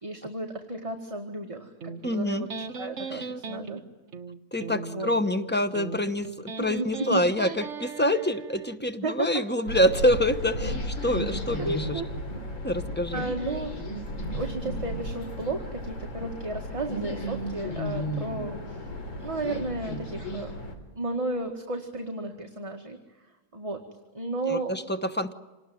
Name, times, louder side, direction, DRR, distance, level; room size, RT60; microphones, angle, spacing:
voice 1, 0.0-3.8 4.9-5.1 6.6-7.2 9.0-9.4 11.6-12.1 13.1-13.7 14.3-18.8 19.2-20.6 21.0-23.0 23.5-23.8 24.1-24.7, right 2 dB, 15° right, 2 dB, 1.8 m, -33 dB
Electric guitar, 1.8-8.8, right 4 dB, 40° right, 1.4 m, -39 dB
voice 2, 2.0-2.5 3.1-3.2 4.5-12.0 12.6-13.2 24.5-25.3, left 1 dB, 10° left, 9 dB, 0.6 m, -26 dB
sound 1, 9.7-20.8, equal, 75° left, 3.8 m, -34 dB
27.0 x 19.5 x 9.4 m, 1.2 s
omnidirectional pair, 2.1 m